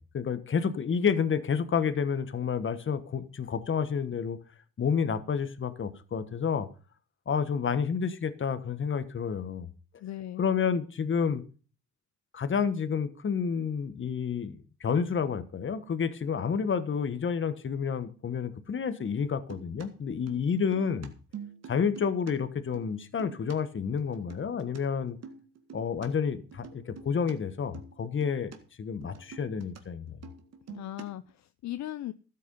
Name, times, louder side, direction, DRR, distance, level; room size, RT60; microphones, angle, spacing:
voice 1, 0.0-4.4 4.8-6.7 7.3-9.7 10.4-11.4 12.3-21.1 21.7-25.2 25.7-28.5 28.8-30.2, left 6 dB, 40° left, 12 dB, 1.3 m, -30 dB
voice 2, 10.0-10.5 30.7-32.1, left 13 dB, 65° left, 13 dB, 0.6 m, -38 dB
sound 1, 19.3-22.3 22.6-23.6 24.0-24.8 25.1-26.1 26.5-27.3 27.7-27.9 28.2-28.6 28.8-29.8 30.1-31.3, right 6 dB, 60° right, 2.0 m, -46 dB
13.0 x 8.3 x 5.4 m, 0.37 s
cardioid pair, 90°, 30 cm